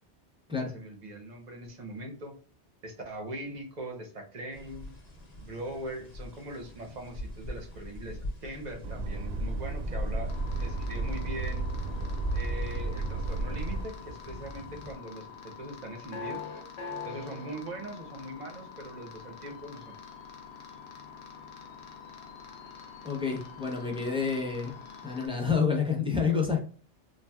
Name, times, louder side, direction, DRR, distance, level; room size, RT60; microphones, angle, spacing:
voice 1, 0.6-2.4 2.8-4.9 5.4-10.3 10.6-11.6 12.3-16.5 17.0-20.0, right 1 dB, 45° right, 3 dB, 0.7 m, -41 dB
sound 1, 4.5-15.0, left 1 dB, 40° left, 0.9 m, -40 dB
sound 2, 8.8-13.9, right 2 dB, 90° right, 0.9 m, -33 dB
sound 3, 10.3-25.3, left 6 dB, 65° left, 0.9 m, -45 dB
voice 2, 23.0-24.7 25.0-26.6, left 5 dB, 10° right, -1 dB, 0.3 m, -28 dB
3.3 x 2.3 x 2.2 m, 0.42 s
omnidirectional pair, 1.2 m